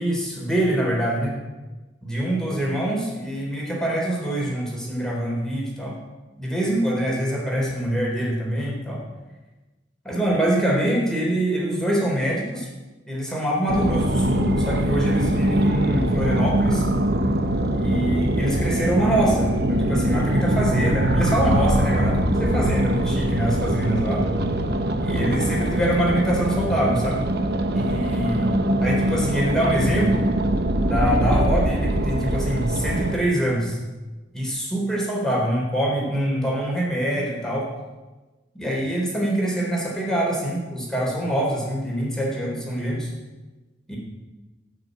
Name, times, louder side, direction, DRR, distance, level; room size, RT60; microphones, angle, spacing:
voice 1, 0.0-1.4 2.0-5.9 6.4-9.0 10.0-12.7 13.1-16.9 17.7-24.2 25.0-27.2 27.7-28.5 28.8-30.2 30.8-33.8 34.3-37.7 38.5-43.1 43.9-44.0, right 1 dB, 5° left, -4 dB, 3.8 m, -24 dB
sound 1, 13.7-33.2, right 1 dB, 60° right, 1.1 m, -22 dB
15.5 x 7.2 x 9.4 m, 1.2 s
head